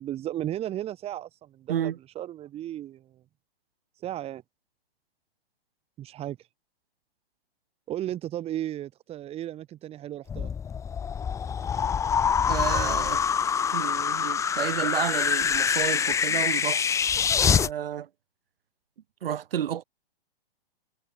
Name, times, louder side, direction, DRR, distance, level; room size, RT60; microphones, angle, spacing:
voice 1, 0.0-3.2 4.0-4.4 6.0-6.4 7.9-10.6, right 12 dB, 20° right, 4.6 m, -35 dB
sound 1, 10.3-17.7, left 7 dB, 10° left, 1.2 m, -25 dB
voice 2, 12.5-13.2 13.7-16.8 17.4-18.1 19.2-19.8, right 10 dB, 65° right, 6.7 m, -31 dB
hypercardioid pair, 155°, 30 cm